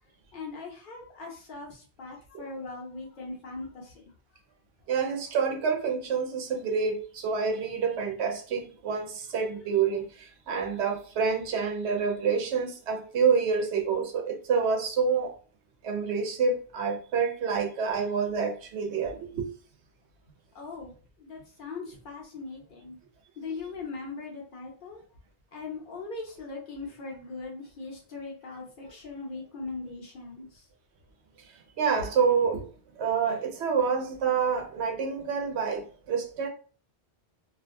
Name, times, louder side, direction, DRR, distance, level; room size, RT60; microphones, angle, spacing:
voice 1, 0.3-4.0 10.7-10.8 20.5-23.0 23.4-25.0 25.5-30.7, left 3 dB, 55° left, 0.8 m, -40 dB
voice 2, 4.9-15.4 15.8-19.5 31.8-32.7 33.0-36.5, right 5 dB, 80° right, 0.8 m, -27 dB
2.4 x 2.2 x 2.5 m
omnidirectional pair, 1.1 m